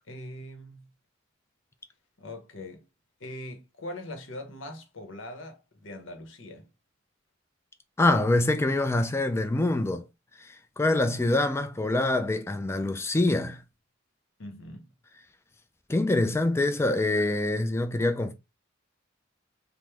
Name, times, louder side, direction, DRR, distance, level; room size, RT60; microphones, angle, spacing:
voice 1, 0.1-0.9 2.2-2.9 3.2-6.7 14.4-14.9, left 1 dB, 70° left, 0.8 m, -41 dB
voice 2, 8.0-10.0 10.4-13.6 15.9-18.3, left 2 dB, 15° left, 0.3 m, -25 dB
3.4 x 2.0 x 3.0 m
head